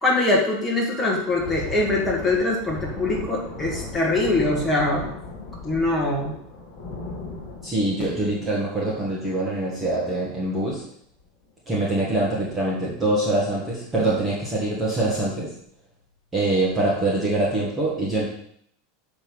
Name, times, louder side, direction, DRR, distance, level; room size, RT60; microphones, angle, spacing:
voice 1, 0.0-5.1 5.6-6.4, left 2 dB, 10° left, -3 dB, 1.9 m, -23 dB
Thunder, 1.2-10.3 10.6-10.8 11.2-11.4 12.1-12.5, left 3 dB, 35° left, 2.9 m, -37 dB
voice 2, 7.6-10.8 11.7-15.5 16.3-18.3, right 2 dB, 10° right, -5 dB, 1.5 m, -24 dB
6.8 x 5.4 x 6.2 m, 0.67 s
supercardioid pair, 175°, 0 cm